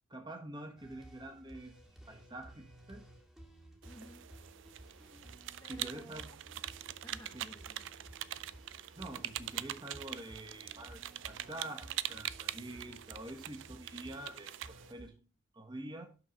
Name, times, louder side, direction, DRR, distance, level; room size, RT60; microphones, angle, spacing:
voice 1, 0.1-1.7 2.1-3.0 5.7-6.2 7.3-7.5 9.0-11.0 11.3-15.1 15.5-16.1, right 1 dB, 20° right, 4 dB, 1.1 m, -46 dB
sound 1, 0.8-15.1, right 1 dB, 5° right, 1.3 m, -55 dB
sound 2, 3.8-14.9, right 12 dB, 65° right, 0.4 m, -43 dB
voice 2, 3.9-4.3 5.6-6.7 7.0-7.9, equal, 15° left, 0 dB, 0.9 m, -55 dB
6.3 x 6.0 x 5.3 m, 0.35 s
head